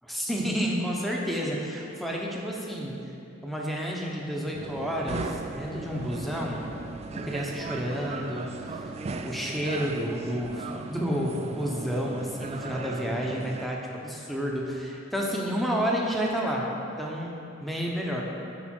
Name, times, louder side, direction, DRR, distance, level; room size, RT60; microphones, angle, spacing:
voice 1, 0.0-3.0 3.4-6.7 7.1-8.8 9.2-16.7 17.0-18.2, equal, ahead, -3 dB, 0.8 m, -30 dB
sound 1, 4.5-13.7, right 3 dB, 30° right, 0.3 m, -38 dB
9.1 x 4.9 x 4.4 m, 2.7 s
head